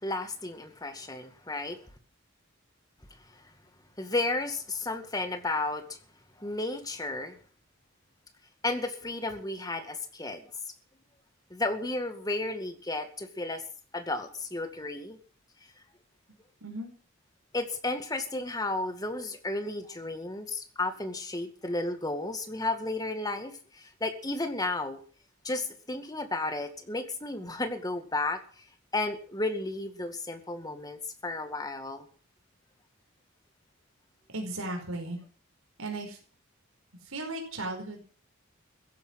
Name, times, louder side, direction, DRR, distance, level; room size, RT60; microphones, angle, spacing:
voice 1, 0.0-1.8 4.0-6.0 6.4-7.4 8.6-10.7 11.5-13.6 13.9-15.2 17.5-25.0 25.4-28.6 28.9-32.0, left 2 dB, 20° left, 7 dB, 2.0 m, -33 dB
voice 2, 16.6-16.9 34.3-35.2 35.8-36.2 37.0-38.0, right 2 dB, 85° right, 2 dB, 5.1 m, -36 dB
16.0 x 11.0 x 7.6 m, 0.43 s
head